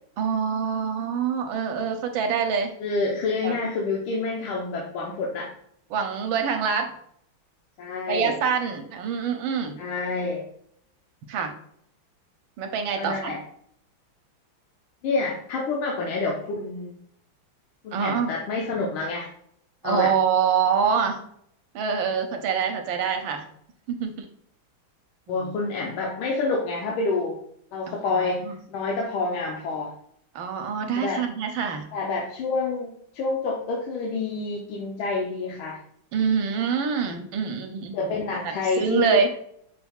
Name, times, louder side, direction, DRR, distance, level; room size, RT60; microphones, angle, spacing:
voice 1, 0.2-2.7 3.4-3.6 5.9-6.9 8.1-9.8 11.3-11.5 12.6-13.3 17.9-18.3 19.8-21.2 21.7-23.5 23.9-24.2 25.3-25.5 27.9-28.5 30.3-31.9 36.1-39.3, right 6 dB, 75° right, 5 dB, 1.4 m, -25 dB
voice 2, 2.8-5.5 7.8-8.4 9.8-10.4 13.0-13.4 15.0-17.0 17.8-19.3 19.8-20.1 25.3-27.4 27.7-29.9 31.0-31.2 31.9-35.8 37.9-39.3, left 3 dB, 85° left, -2 dB, 1.5 m, -28 dB
5.8 x 2.3 x 3.5 m, 0.69 s
omnidirectional pair, 2.2 m